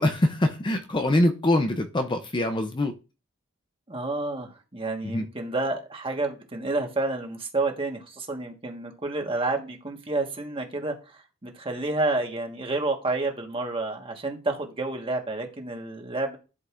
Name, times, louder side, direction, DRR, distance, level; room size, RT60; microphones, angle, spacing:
voice 1, 0.0-3.0 5.0-5.2, left 1 dB, 25° left, 6 dB, 0.6 m, -24 dB
voice 2, 3.9-16.4, right 2 dB, 25° right, 3 dB, 1.4 m, -30 dB
11.5 x 5.2 x 2.5 m, 0.32 s
head